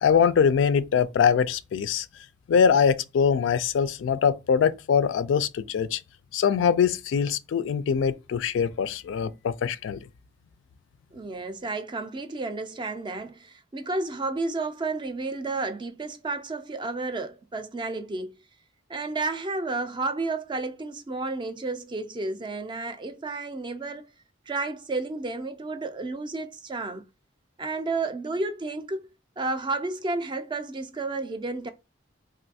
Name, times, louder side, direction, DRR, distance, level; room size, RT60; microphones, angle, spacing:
voice 1, 0.0-2.1 2.5-6.0 6.3-10.0, left 7 dB, 70° left, 0.3 m, -23 dB
voice 2, 11.1-18.4 18.9-24.1 24.5-27.1 27.6-29.0 29.4-31.7, right 3 dB, 25° right, 0.4 m, -31 dB
3.1 x 2.5 x 2.6 m
head